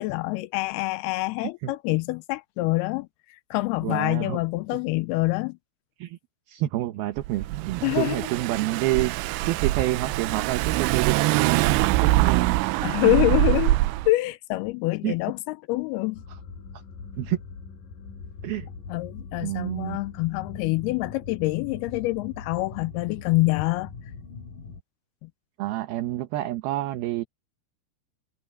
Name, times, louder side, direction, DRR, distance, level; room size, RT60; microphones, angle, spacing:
voice 1, 0.0-5.6 7.8-8.2 12.8-13.8 14.1-16.2 18.9-23.9 25.2-25.3, left 20 dB, 85° left, 2.3 m, -26 dB
voice 2, 1.4-1.7 3.8-4.4 6.0-6.2 6.5-9.1 9.5-11.7 12.0-12.6 13.1-13.2 15.0-15.2 17.2-17.4 18.4-18.7 19.4-20.0 25.6-27.2, right 15 dB, 70° right, 2.7 m, -28 dB
Car / Engine, 7.2-14.1, right 18 dB, 90° right, 2.9 m, -24 dB
sound 1, 16.1-24.8, left 5 dB, 55° left, 6.8 m, -42 dB
omnidirectional pair, 4.9 m